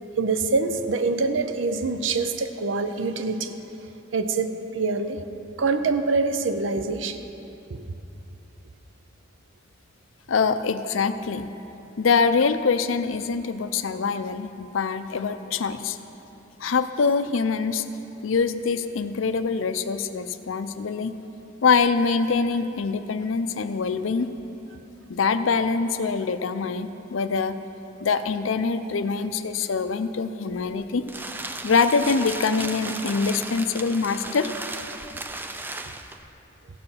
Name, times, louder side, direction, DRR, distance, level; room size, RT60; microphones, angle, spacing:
voice 1, 0.2-3.5 4.1-5.2 5.6-7.2 7.7-7.8, right 4 dB, 70° right, 9 dB, 0.6 m, -25 dB
voice 2, 10.3-11.5 12.0-16.0 16.6-17.8 18.2-21.1 21.6-24.3 25.1-27.6 28.0-31.0 31.6-34.5, left 5 dB, 85° left, 11 dB, 0.5 m, -24 dB
sound 1, 30.6-36.3, right 2 dB, 10° right, 0.4 m, -35 dB
15.0 x 6.7 x 5.7 m, 2.8 s
head